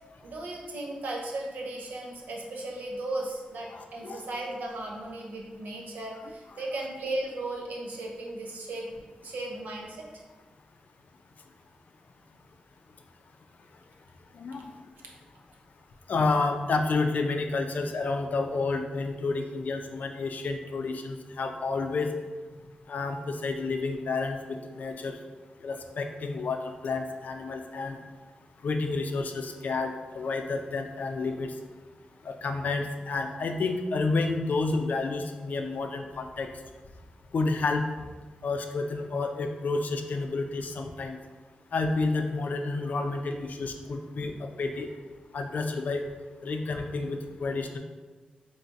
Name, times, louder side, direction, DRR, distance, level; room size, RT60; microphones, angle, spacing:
voice 1, 0.2-10.1 44.2-44.3, right 2 dB, 85° right, -1 dB, 0.7 m, -36 dB
voice 2, 3.7-4.2 6.2-6.6 14.3-14.7 16.1-22.1 22.9-25.2 25.6-28.0 28.6-31.6 32.2-36.5 37.3-37.8 38.4-41.2 41.7-44.9 45.3-46.0 46.4-47.8, left 3 dB, 70° left, 5 dB, 0.4 m, -30 dB
3.2 x 2.7 x 4.4 m, 1.3 s
cardioid pair, 70°, 3 cm